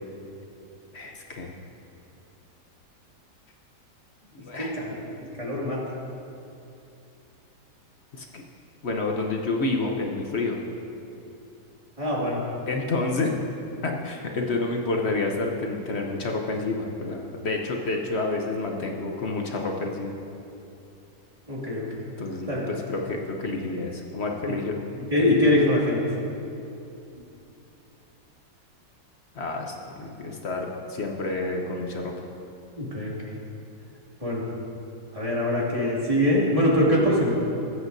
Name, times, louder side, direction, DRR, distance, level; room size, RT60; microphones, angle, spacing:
voice 1, 0.9-1.5 4.3-4.8 8.1-8.4 8.8-10.6 12.7-13.3 13.8-20.1 22.2-24.7 29.3-32.2, left 3 dB, 50° left, 1 dB, 0.9 m, -29 dB
voice 2, 4.5-4.9 5.4-5.8 12.0-12.4 21.5-21.9 22.5-22.7 24.5-24.6 25.1-26.0 32.8-33.1 34.2-34.4 35.1-37.3, left 1 dB, 20° right, -6 dB, 2.2 m, -23 dB
20.0 x 8.0 x 2.7 m, 2.8 s
omnidirectional pair, 1.8 m